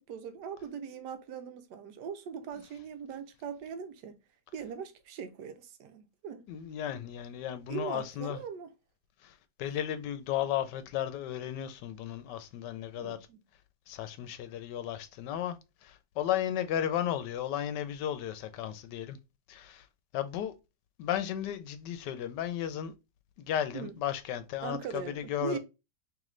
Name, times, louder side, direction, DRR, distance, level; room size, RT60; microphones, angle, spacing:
voice 1, 0.0-4.2 4.5-6.5 7.7-8.7 13.0-13.4 23.7-24.0 24.6-25.6, right 6 dB, 80° right, 1.2 m, -40 dB
voice 2, 6.5-8.4 9.2-9.3 9.6-13.2 13.9-15.6 15.8-19.2 19.5-19.8 20.1-20.5 21.0-22.9 23.4-25.6, left 10 dB, 85° left, 1.2 m, -34 dB
3.2 x 3.1 x 3.7 m
omnidirectional pair, 1.8 m